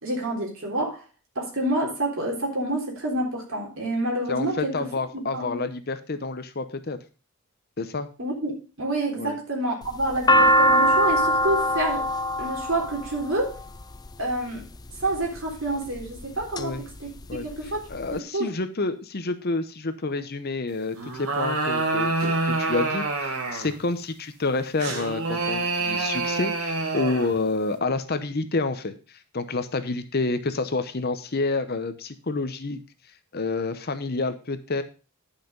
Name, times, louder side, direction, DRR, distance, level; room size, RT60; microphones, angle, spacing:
voice 1, 0.0-1.0 1.4-4.7 5.1-5.7 8.2-12.1 12.4-13.6 14.2-14.6 15.0-17.1 17.4-17.8 18.1-18.5, right 1 dB, 60° right, -1 dB, 3.6 m, -28 dB
voice 2, 4.3-7.0 7.8-8.1 9.2-9.4 16.6-16.8 17.3-32.8 33.3-34.8, left 3 dB, 45° left, 10 dB, 0.8 m, -29 dB
sound 1, 9.8-14.1 14.9-15.4 16.0-16.6 17.0-17.1 17.2-18.1, equal, 20° left, 0.4 m, -21 dB
sound 2, 21.0-23.8 24.8-27.4, right 3 dB, 75° right, 2.0 m, -27 dB
10.5 x 5.8 x 5.2 m, 0.34 s
head